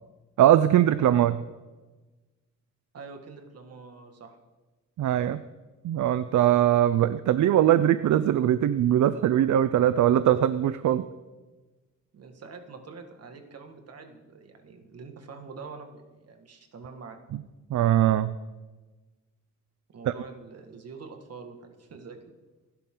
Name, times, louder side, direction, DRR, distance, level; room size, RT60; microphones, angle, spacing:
voice 1, 0.4-1.4 5.0-5.4 5.8-11.0 17.3-17.4 17.7-18.4 20.1-20.2, right 11 dB, 70° right, 13 dB, 0.6 m, -21 dB
voice 2, 2.9-4.4 12.1-17.2 19.9-22.2, right 4 dB, 55° right, 5 dB, 2.0 m, -45 dB
28.5 x 11.5 x 3.9 m, 1.2 s
wide cardioid pair, 165°, 30 cm